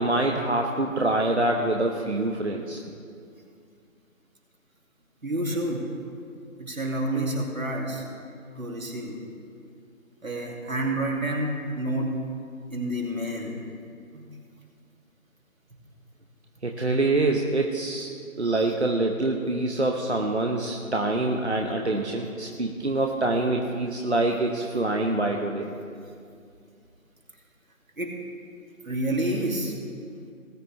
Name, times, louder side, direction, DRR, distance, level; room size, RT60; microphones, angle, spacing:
voice 1, 0.0-2.8 16.6-18.1 18.4-25.7, right 2 dB, 50° right, 1 dB, 1.0 m, -25 dB
voice 2, 5.2-5.9 6.6-8.0 8.6-9.2 10.2-12.2 12.7-13.6 14.1-14.2 18.4-18.7 28.0-28.1 28.8-29.7, right 1 dB, 70° right, -1 dB, 2.7 m, -29 dB
19.0 x 9.3 x 3.3 m, 2.3 s
figure-of-eight pair, 165°, 43 cm